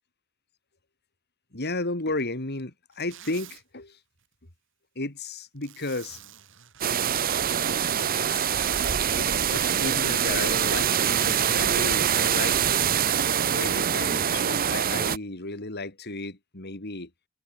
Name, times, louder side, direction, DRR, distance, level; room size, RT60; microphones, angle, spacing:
voice 1, 1.5-4.0 4.9-6.2 8.1-8.5 9.1-12.6 13.5-17.1, left 2 dB, 50° left, 3.4 m, -33 dB
Zipper (clothing), 2.9-3.6 5.6-6.9 8.2-8.9 10.7-11.6, right 12 dB, 65° right, 5.3 m, -46 dB
sound 1, 6.8-15.2, right 8 dB, 45° right, 0.8 m, -24 dB
head